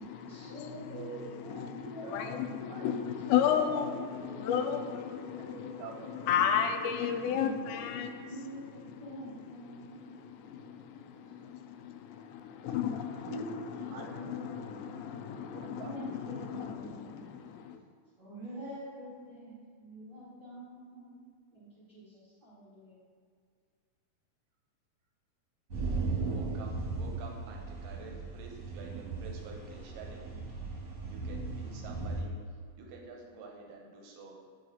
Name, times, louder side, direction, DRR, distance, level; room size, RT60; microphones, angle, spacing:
voice 1, 0.0-1.1 1.4-2.4 3.4-6.2 7.3-10.7 13.2-15.1 15.7-17.5 18.2-21.3 21.5-23.0, equal, 60° right, -10 dB, 1.0 m, -46 dB
voice 2, 0.9-2.1 2.7-3.2 4.2-4.5 5.8-6.6 13.9-14.3 15.5-15.9 26.3-30.5 31.1-32.4 32.8-34.4, right 4 dB, 80° right, 1 dB, 2.1 m, -48 dB
voice 3, 1.4-8.1 10.4-13.4 13.8-17.8, left 8 dB, 85° left, 6 dB, 2.3 m, -33 dB
sound 1, 25.7-32.2, right 3 dB, 40° right, 1.7 m, -37 dB
9.1 x 4.8 x 2.7 m, 2.1 s
omnidirectional pair, 4.1 m